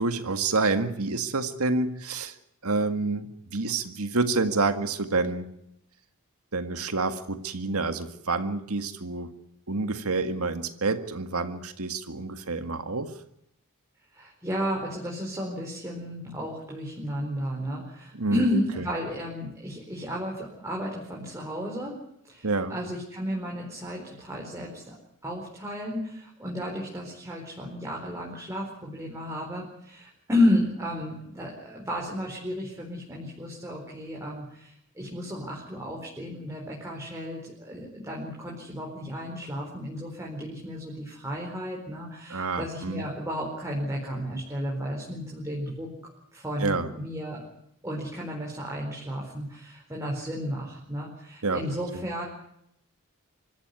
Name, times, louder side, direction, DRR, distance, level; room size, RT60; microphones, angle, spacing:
voice 1, 0.0-2.4 2.6-5.5 6.5-9.3 9.7-13.2 18.1-18.4 18.8-18.9 22.4-22.8 42.3-43.1 46.6-46.9 51.4-51.6 51.9-52.0, right 3 dB, 80° right, 9 dB, 1.9 m, -28 dB
voice 2, 14.1-21.9 22.3-24.9 25.2-45.9 46.3-47.4 47.8-52.2, left 1 dB, 15° right, -2 dB, 4.5 m, -32 dB
25.5 x 14.0 x 9.6 m, 0.76 s
head